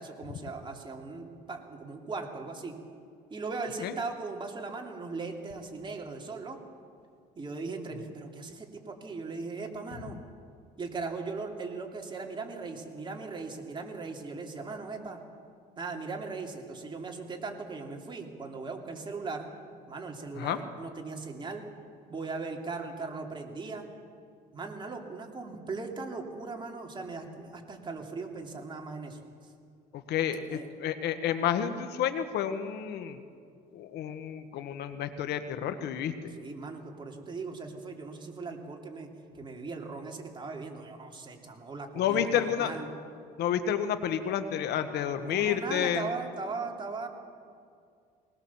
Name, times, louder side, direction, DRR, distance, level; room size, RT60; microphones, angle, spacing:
voice 1, 0.0-2.8 3.3-6.6 7.3-10.2 10.8-15.2 15.8-19.5 19.9-21.6 22.1-23.9 24.5-29.5 30.5-30.7 36.4-39.1 39.3-42.9 45.2-47.1, right 4 dB, 30° right, 1 dB, 2.9 m, -38 dB
voice 2, 29.9-33.2 33.7-36.3 42.0-42.7 43.4-46.1, left 9 dB, 75° left, 10 dB, 1.3 m, -30 dB
20.5 x 19.5 x 7.2 m, 2.3 s
cardioid pair, 110°, 17 cm